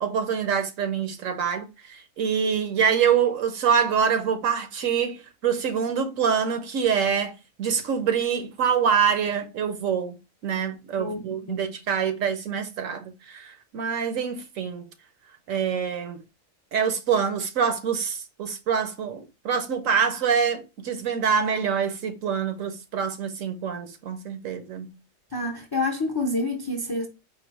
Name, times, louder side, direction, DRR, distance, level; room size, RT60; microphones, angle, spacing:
voice 1, 0.0-10.2 10.4-14.9 15.5-16.2 16.7-24.9, right 7 dB, 85° right, 1.2 m, -25 dB
voice 2, 11.0-11.7 25.3-27.1, left 2 dB, 30° left, 0.4 m, -28 dB
4.6 x 2.3 x 4.6 m
omnidirectional pair, 1.4 m